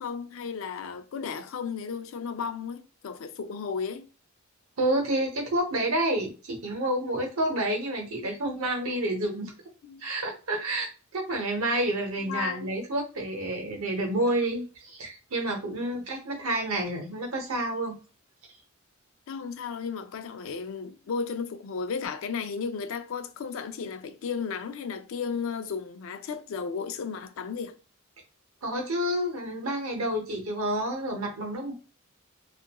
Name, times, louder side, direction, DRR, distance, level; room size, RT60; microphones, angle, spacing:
voice 1, 0.0-4.1 9.8-10.0 12.3-12.7 15.8-15.9 19.3-27.8, left 5 dB, 65° left, 0.4 m, -34 dB
voice 2, 4.8-9.5 10.0-18.0 28.6-31.7, right 1 dB, 85° right, 0.8 m, -29 dB
2.9 x 2.4 x 2.2 m
head